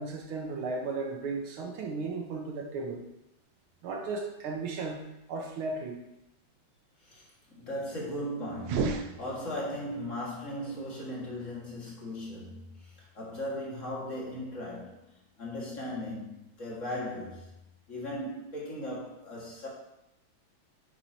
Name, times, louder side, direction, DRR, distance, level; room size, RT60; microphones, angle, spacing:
voice 1, 0.0-3.0 3.8-6.0, right 3 dB, 85° right, 2 dB, 1.9 m, -35 dB
voice 2, 7.0-15.1 15.4-17.5 17.9-19.7, left 1 dB, 40° left, -4 dB, 2.1 m, -38 dB
sound 1, 8.6-9.9, right 4 dB, 70° right, 1.2 m, -33 dB
7.9 x 7.5 x 2.8 m, 0.87 s
omnidirectional pair, 2.2 m